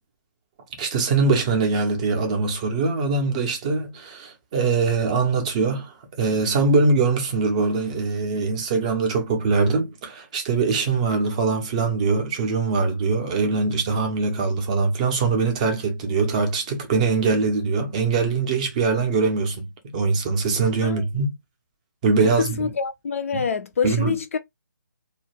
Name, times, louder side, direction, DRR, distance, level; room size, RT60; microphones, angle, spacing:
voice 1, 0.8-21.3 22.0-22.7 23.3-23.4 23.8-24.1, right 4 dB, 20° right, 0.5 m, -22 dB
voice 2, 22.4-24.4, left 6 dB, 45° left, 0.3 m, -26 dB
2.3 x 2.1 x 3.1 m
figure-of-eight pair, 155°, 11 cm